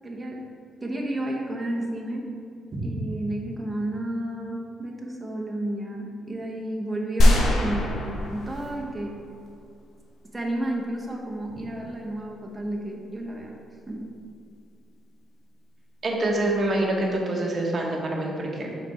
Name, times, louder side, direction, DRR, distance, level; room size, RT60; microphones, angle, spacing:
voice 1, 0.0-0.5 0.8-2.3 2.9-9.2 10.3-13.5 13.9-14.1, right 1 dB, 15° right, -1 dB, 0.9 m, -31 dB
sound 1, 7.2-9.1 9.5-9.6, left 1 dB, 65° left, 0.9 m, -22 dB
voice 2, 16.0-18.8, right 1 dB, 40° right, -1 dB, 1.1 m, -26 dB
4.9 x 4.2 x 4.8 m, 2.3 s
cardioid pair, 90°, 0 cm